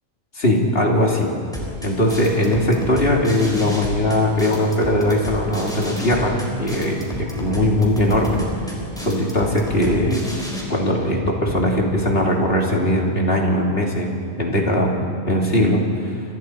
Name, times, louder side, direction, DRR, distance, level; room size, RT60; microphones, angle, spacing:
voice 1, 0.4-1.3 1.8-8.4 9.0-10.2 10.7-14.1 14.4-14.9 15.3-16.2, left 1 dB, 55° left, -1 dB, 3.3 m, -20 dB
sound 1, 1.5-10.6, equal, 5° left, 4.5 m, -32 dB
29.5 x 25.0 x 4.7 m, 2.2 s
omnidirectional pair, 1.2 m